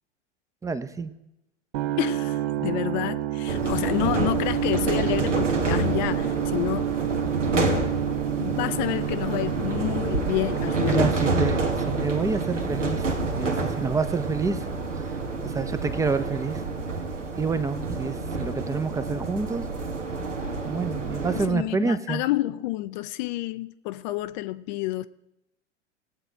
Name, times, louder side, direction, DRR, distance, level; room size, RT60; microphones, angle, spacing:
voice 1, 0.6-1.1 10.8-14.7 15.0-15.1 15.4-16.6 17.4-19.6 20.6-22.2, right 4 dB, 10° right, 0.6 m, -28 dB
sound 1, 1.7-17.7, right 13 dB, 55° right, 0.7 m, -31 dB
voice 2, 2.0-6.9 7.5-7.9 8.3-11.3 21.5-25.1, left 16 dB, 40° left, 0.5 m, -29 dB
sound 2, 3.5-21.5, right 3 dB, 85° right, 1.5 m, -28 dB
19.0 x 7.9 x 4.5 m
figure-of-eight pair, 95°, 36 cm